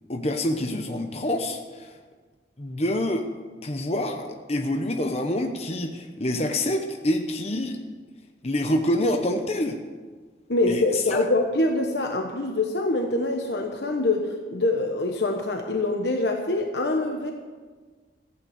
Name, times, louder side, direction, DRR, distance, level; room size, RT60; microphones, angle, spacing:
voice 1, 0.1-1.9 2.6-3.3 3.6-7.8 8.4-9.8 10.7-11.2, left 1 dB, 35° left, 4 dB, 0.9 m, -26 dB
voice 2, 10.5-17.3, left 2 dB, 65° left, 3 dB, 1.1 m, -25 dB
14.5 x 9.0 x 8.1 m, 1.4 s
head